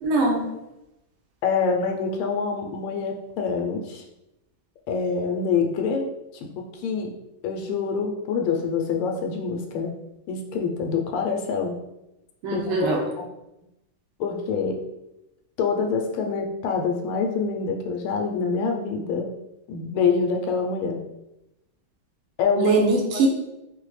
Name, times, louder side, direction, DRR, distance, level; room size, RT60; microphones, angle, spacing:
voice 1, 0.0-0.4 12.4-13.0 22.5-23.3, right 3 dB, 85° right, 1 dB, 1.5 m, -22 dB
voice 2, 1.4-4.0 4.9-6.1 6.8-7.1 7.4-9.9 10.3-11.8 12.5-12.9 14.2-14.8 15.6-19.3 19.7-21.0 22.4-22.8 23.1-23.2, left 5 dB, 90° left, 2 dB, 1.5 m, -25 dB
4.4 x 2.1 x 3.1 m, 0.92 s
omnidirectional pair, 2.3 m